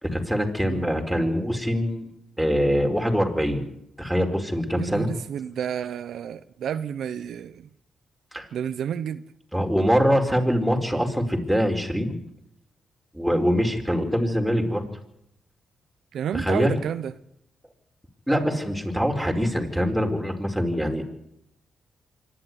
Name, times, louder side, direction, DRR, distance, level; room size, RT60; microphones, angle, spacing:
voice 1, 0.0-2.1 2.4-3.6 4.0-5.1 8.3-8.5 9.5-12.2 13.1-14.8 16.3-16.7 18.3-21.0, equal, ahead, 4.7 m, -23 dB
voice 2, 4.8-7.7 8.5-9.3 16.1-17.1, right 8 dB, 75° right, 0.9 m, -30 dB
25.5 x 11.5 x 9.6 m
cardioid pair, 70°, 0 cm